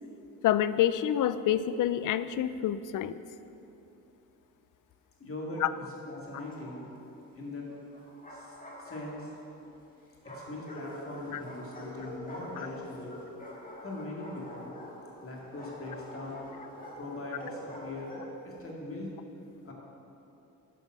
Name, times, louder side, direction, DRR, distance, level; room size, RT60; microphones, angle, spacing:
voice 1, 0.4-3.2 5.6-5.7 11.3-11.4 12.6-12.7, left 11 dB, 60° left, 14 dB, 0.5 m, -27 dB
voice 2, 5.2-6.9 7.4-7.7 8.3-9.3 9.6-9.7 10.2-13.2 13.8-14.7 15.2-16.4 17.0-18.2 18.4-19.1 19.6-19.7, left 2 dB, 40° left, -3 dB, 2.2 m, -41 dB
Bark, 6.1-7.0 7.9-9.5 10.2-18.4, equal, 25° left, 2.0 m, -45 dB
9.4 x 5.4 x 6.1 m, 2.9 s
cardioid pair, 90°, 35 cm